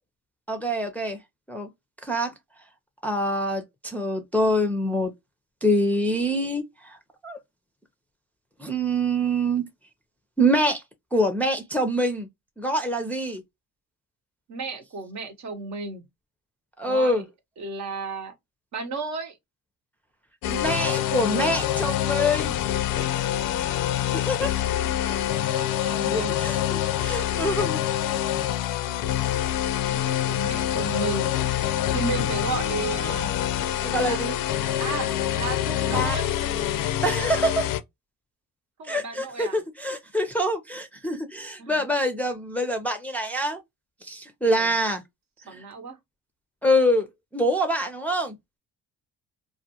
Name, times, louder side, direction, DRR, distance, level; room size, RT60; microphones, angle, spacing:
voice 1, 0.5-1.2 1.5-1.7 2.0-2.3 3.0-5.1 5.6-7.0 7.2-7.4 8.6-9.6 10.4-10.8 11.1-12.3 12.6-13.4 16.8-17.2 20.5-22.6 24.1-24.5 25.8-27.8 30.5-30.6 33.8-34.3 35.9-36.2 37.0-37.7 38.9-43.6 44.0-45.0 45.5-45.6 46.6-47.1 47.3-48.4, equal, 5° left, 0.5 m, -25 dB
voice 2, 14.5-16.0 16.8-17.2 17.6-18.3 18.7-19.4 23.0-23.3 24.9-26.4 29.8-31.3 31.9-33.4 34.1-34.2 34.8-35.1 35.4-36.3 38.8-39.6 41.6-41.8 44.4-44.7 45.5-46.0, right 4 dB, 50° right, 0.8 m, -33 dB
sound 1, 20.4-37.8, left 12 dB, 70° left, 0.5 m, -26 dB
2.3 x 2.2 x 2.7 m
supercardioid pair, 70°, 35 cm